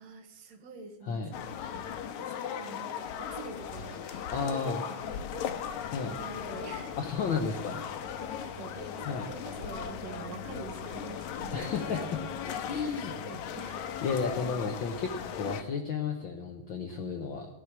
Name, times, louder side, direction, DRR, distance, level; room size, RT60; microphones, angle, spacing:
voice 1, 0.0-7.0 7.3-7.6 8.2-12.1 12.4-13.8, right 4 dB, 70° right, 7 dB, 2.2 m, -47 dB
sound 1, 1.3-15.6, left 8 dB, 80° left, 2.2 m, -38 dB
voice 2, 4.3-4.8 5.9-6.1 7.0-7.8 9.0-9.3 11.5-12.2 12.7-13.1 14.0-17.5, left 5 dB, 65° left, 3 dB, 1.2 m, -32 dB
15.5 x 6.3 x 7.4 m, 1.1 s
omnidirectional pair, 3.3 m